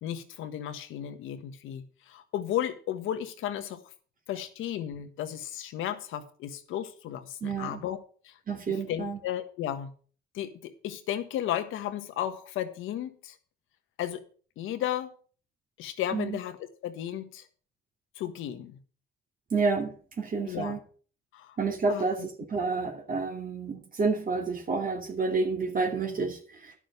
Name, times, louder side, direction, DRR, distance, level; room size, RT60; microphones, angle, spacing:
voice 1, 0.0-3.8 4.3-8.4 8.7-9.9 10.3-13.3 14.0-14.2 14.6-15.1 15.8-17.5 18.2-18.8 20.5-20.8 21.3-21.6 21.9-22.1, left 11 dB, 90° left, 9 dB, 1.4 m, -34 dB
voice 2, 7.4-7.8 8.5-9.2 16.1-16.4 19.5-20.8 21.6-26.7, right 4 dB, 45° right, 2 dB, 2.6 m, -29 dB
11.5 x 6.4 x 6.7 m, 0.42 s
cardioid pair, 90°, 20 cm